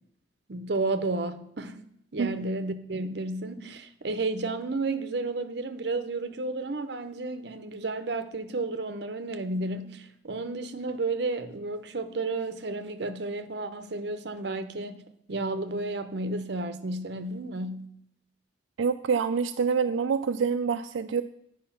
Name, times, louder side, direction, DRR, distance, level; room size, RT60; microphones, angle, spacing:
voice 1, 0.5-1.8 2.1-15.0 15.3-17.9, right 2 dB, 60° right, 0.7 m, -32 dB
voice 2, 18.8-21.2, right 6 dB, 90° right, 0.4 m, -26 dB
9.0 x 4.9 x 5.7 m
head